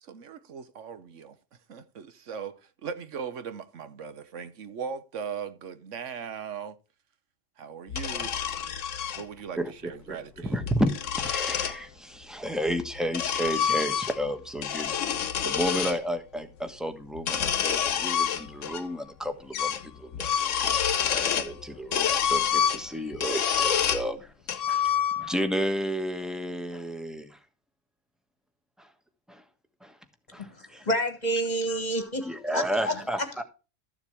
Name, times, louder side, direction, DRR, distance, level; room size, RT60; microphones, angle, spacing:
voice 1, 0.0-1.4 1.7-6.8 7.6-8.5 9.2-9.6 9.8-10.6, right 6 dB, 75° right, 1.3 m, -39 dB
sound 1, 7.9-9.2 10.4-11.8 12.7-14.3 14.6-16.0 17.2-18.8 19.1-19.2 19.5-19.9 20.1-21.5 21.9-24.1 24.5-25.4, left 8 dB, 75° left, 1.2 m, -27 dB
voice 2, 9.6-10.9 11.2-14.9 15.4-24.3 24.6-27.4 28.8-28.9 29.3-29.4 29.8-30.0 30.3-30.9 31.7-33.4, equal, ahead, 1.2 m, -32 dB
voice 3, 30.9-33.0, right 1 dB, 35° left, 1.7 m, -28 dB
13.5 x 7.1 x 3.3 m
omnidirectional pair, 1.3 m